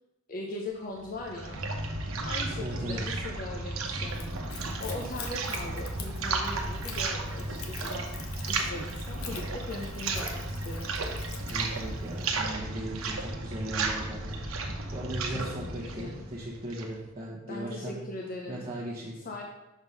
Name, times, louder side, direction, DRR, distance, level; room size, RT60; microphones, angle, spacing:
voice 1, 0.3-1.6 2.2-10.9 15.3-16.3 17.5-18.6 19.2-19.4, left 2 dB, 40° left, 0 dB, 0.7 m, -40 dB
sound 1, 1.0-17.0, right 3 dB, 80° right, 0.9 m, -34 dB
voice 2, 2.6-3.1 11.4-14.6 14.9-18.0 18.5-19.2, right 1 dB, 25° right, -5 dB, 1.1 m, -37 dB
Splash splatter / Trickle dribble, 4.1-12.4, left 7 dB, 85° left, 0.8 m, -46 dB
6.3 x 3.6 x 5.4 m, 1.0 s
head